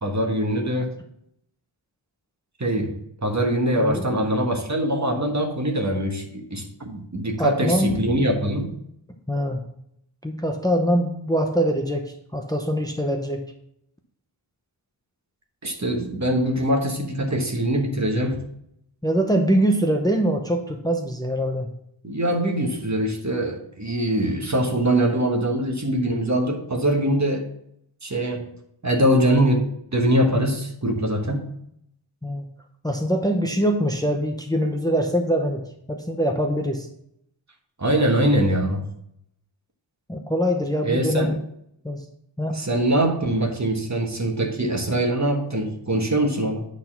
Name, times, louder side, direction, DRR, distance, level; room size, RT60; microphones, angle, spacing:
voice 1, 0.0-0.9 2.6-8.7 15.6-18.4 22.0-27.5 28.0-28.5 28.8-29.6 29.9-31.5 37.8-38.9 40.8-41.4 42.5-46.7, right 1 dB, 35° right, 2 dB, 1.4 m, -23 dB
voice 2, 7.4-8.0 9.3-9.6 10.2-13.4 19.0-21.7 32.2-32.4 32.8-35.6 35.9-36.9 40.1-41.4 41.8-42.0 42.4-42.6, equal, 10° left, 3 dB, 0.9 m, -23 dB
9.0 x 4.0 x 5.9 m, 0.74 s
wide cardioid pair, 65°, 47 cm